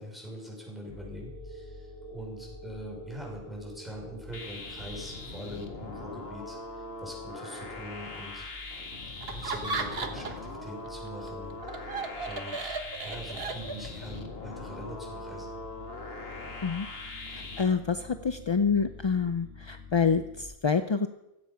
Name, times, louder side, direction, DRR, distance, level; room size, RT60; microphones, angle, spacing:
voice 1, 0.0-8.5 9.3-12.0 12.3-15.5, equal, ahead, -2 dB, 5.8 m, -43 dB
sound 1, 0.9-20.4, left 2 dB, 90° left, 8.5 m, -48 dB
sound 2, 4.3-17.6, left 2 dB, 70° left, 2.0 m, -41 dB
Laughter, 9.2-10.5 10.9-14.1, right 3 dB, 70° right, 1.5 m, -35 dB
voice 2, 17.6-21.1, left 5 dB, 40° left, 9 dB, 0.4 m, -27 dB
16.0 x 13.5 x 5.8 m, 0.93 s
omnidirectional pair, 1.1 m